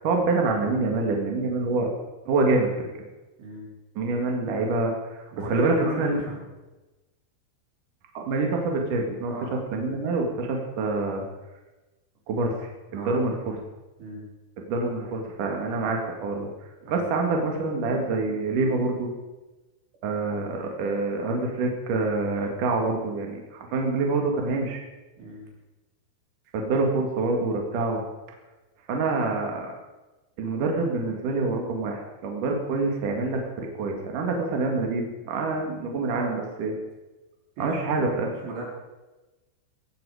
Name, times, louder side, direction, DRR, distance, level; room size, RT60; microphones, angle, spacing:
voice 1, 0.0-1.9 2.3-2.7 4.0-6.2 8.1-9.3 9.7-11.2 12.3-13.6 14.7-16.5 16.9-19.1 20.0-24.8 26.5-28.0 28.9-29.7 30.4-36.7 37.6-38.3, right 3 dB, 50° right, 1 dB, 3.0 m, -26 dB
voice 2, 5.3-6.4 9.3-9.6 12.9-13.2 14.0-14.3 16.8-17.0 25.2-25.5 37.6-38.6, right 1 dB, 70° right, -1 dB, 6.1 m, -36 dB
18.0 x 14.5 x 5.0 m, 1.1 s
omnidirectional pair, 5.7 m